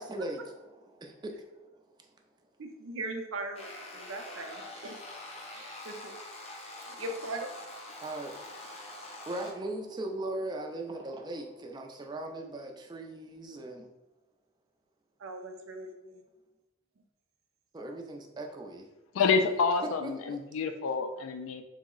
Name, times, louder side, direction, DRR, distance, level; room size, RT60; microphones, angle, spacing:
voice 1, 0.0-1.7 8.0-8.5 9.3-13.9 17.7-18.9 20.0-20.4, right 1 dB, 20° right, 3 dB, 0.3 m, -39 dB
voice 2, 2.6-5.2 5.5-6.1 7.0-7.5 15.2-16.2, right 2 dB, 75° right, 5 dB, 0.5 m, -39 dB
sound 1, 3.5-9.5, left 2 dB, 30° left, 0.6 m, -45 dB
voice 3, 19.1-21.6, left 5 dB, 75° left, 7 dB, 0.3 m, -28 dB
3.8 x 2.0 x 3.7 m, 0.98 s
head